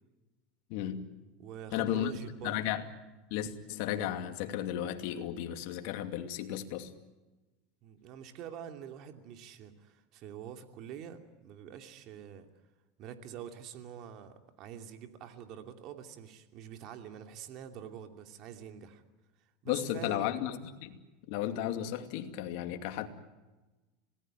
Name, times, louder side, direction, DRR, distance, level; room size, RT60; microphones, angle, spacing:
voice 1, 0.7-1.1 1.7-2.1 2.4-2.8 3.3-6.9 19.7-21.0 21.3-23.1, left 11 dB, 65° left, 2.5 m, -34 dB
voice 2, 1.4-2.7 7.8-12.5 13.0-19.0 19.4-20.3, right 9 dB, 50° right, 2.7 m, -46 dB
26.5 x 19.0 x 9.1 m
supercardioid pair, 125°, 0 cm